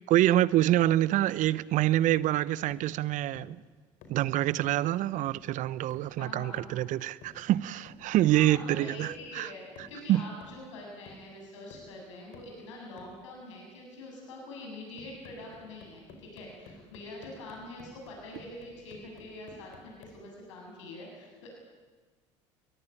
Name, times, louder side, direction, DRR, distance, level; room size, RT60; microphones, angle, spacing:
voice 1, 0.1-3.6 4.1-9.5 10.1-10.2, right 14 dB, 55° right, 0.9 m, -26 dB
sound 1, 1.4-1.6 2.1-2.3 2.7-3.0 3.3-3.6 4.0-4.3 4.6-4.9 5.3-5.5 5.9-6.1 6.6-6.9 7.2-7.5 7.9-8.1 8.5-8.7 9.1-9.4 9.8-10.0 10.4-10.8 11.1-11.3 11.7-12.0 12.3-12.6 13.0-13.2 15.0-20.2, left 3 dB, 65° left, 4.8 m, -53 dB
voice 2, 6.1-6.6 8.2-21.5, left 2 dB, 80° left, 7.7 m, -45 dB
22.5 x 21.0 x 9.9 m
hypercardioid pair, 70°, 15 cm